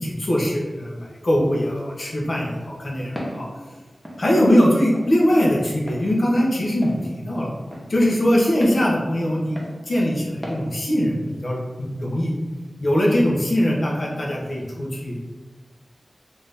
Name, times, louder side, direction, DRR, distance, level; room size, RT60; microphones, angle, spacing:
voice 1, 0.0-3.5 4.2-7.5 7.9-9.6 9.9-12.3 12.8-15.2, equal, 55° left, -3 dB, 0.8 m, -21 dB
Walk footsteps, 3.2-3.4 4.0-4.2 4.9-5.1 5.9-6.0 6.8-7.0 7.7-7.9 8.6-8.8 9.6-9.8 10.4-10.6, equal, 5° left, 0.7 m, -34 dB
3.5 x 2.7 x 3.4 m, 1.3 s
wide cardioid pair, 100°, 0 cm